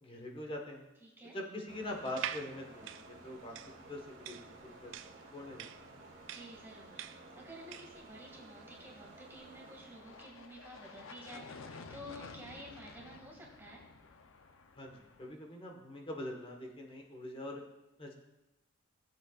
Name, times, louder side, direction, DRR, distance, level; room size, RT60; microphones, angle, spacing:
voice 1, 0.0-0.9 1.3-3.6 3.9-4.4 4.6-4.9 5.3-6.0 14.8-17.6 18.0-18.1, left 1 dB, 30° left, 1 dB, 1.3 m, -43 dB
voice 2, 1.0-1.4 6.2-13.8, equal, 10° right, -3 dB, 2.1 m, -51 dB
sound 1, 1.7-11.9, right 2 dB, 80° right, 1.6 m, -55 dB
sound 2, 2.0-8.0, right 11 dB, 65° right, 0.4 m, -45 dB
sound 3, 9.5-15.3, left 4 dB, 80° left, 0.6 m, -52 dB
15.5 x 7.8 x 2.4 m, 0.97 s
head